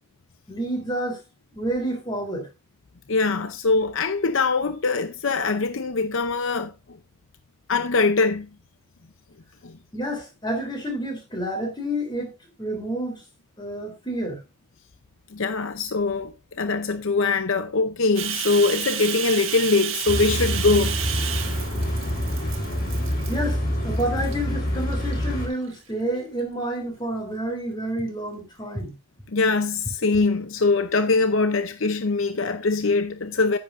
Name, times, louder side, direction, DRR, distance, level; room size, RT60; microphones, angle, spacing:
voice 1, 0.5-1.2 1.5-2.5 9.9-12.3 12.6-13.2 13.6-14.4 23.3-29.0, right 1 dB, 20° left, 3.6 m, -29 dB
voice 2, 3.1-6.7 7.7-8.5 9.6-9.8 15.3-21.0 29.3-33.6, left 3 dB, 65° left, 0.7 m, -22 dB
Bathtub (filling or washing), 18.2-23.5 24.0-24.4 24.9-25.7, right 10 dB, 65° right, 1.4 m, -31 dB
sound 1, 20.1-25.5, equal, 45° left, 4.4 m, -26 dB
10.5 x 10.0 x 2.6 m
head